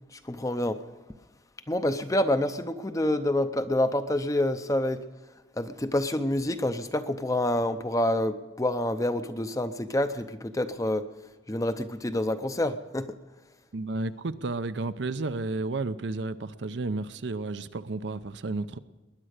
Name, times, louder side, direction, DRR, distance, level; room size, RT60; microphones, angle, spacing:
voice 1, 0.1-0.8 1.7-5.0 5.6-11.1 11.5-13.2, left 1 dB, 15° left, 10 dB, 0.6 m, -27 dB
voice 2, 13.7-18.8, right 3 dB, 65° right, 12 dB, 0.6 m, -32 dB
20.5 x 10.0 x 6.5 m, 1.2 s
head